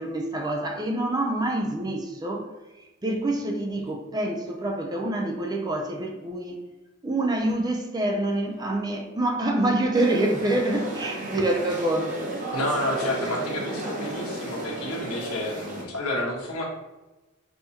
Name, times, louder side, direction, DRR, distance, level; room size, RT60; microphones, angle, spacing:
voice 1, 0.0-2.5 3.0-6.6 7.0-12.4, right 1 dB, 20° right, 2 dB, 0.5 m, -26 dB
sound 1, 9.9-15.8, right 1 dB, 40° right, 0.8 m, -33 dB
voice 2, 12.5-16.6, left 1 dB, 85° left, -2 dB, 1.2 m, -30 dB
5.4 x 3.0 x 2.8 m, 1.1 s
head